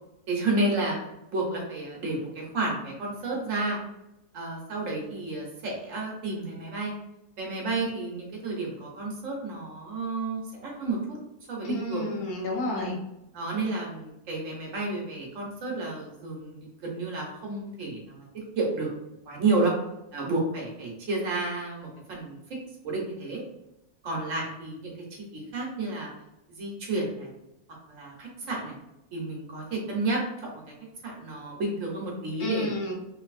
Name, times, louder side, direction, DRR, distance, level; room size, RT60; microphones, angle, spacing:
voice 1, 0.3-1.0 1.3-3.8 4.3-6.9 7.4-11.2 11.5-12.1 12.7-12.9 13.3-18.9 19.3-19.7 20.1-22.4 22.8-23.4 24.0-24.9 25.3-26.1 26.5-27.3 27.9-28.7 29.1-30.2 30.7-30.8 31.0-32.7, right 2 dB, 60° right, -2 dB, 1.2 m, -31 dB
voice 2, 11.6-12.9 32.4-32.9, left 1 dB, 75° left, -2 dB, 1.3 m, -31 dB
3.3 x 2.8 x 2.4 m, 0.90 s
omnidirectional pair, 1.6 m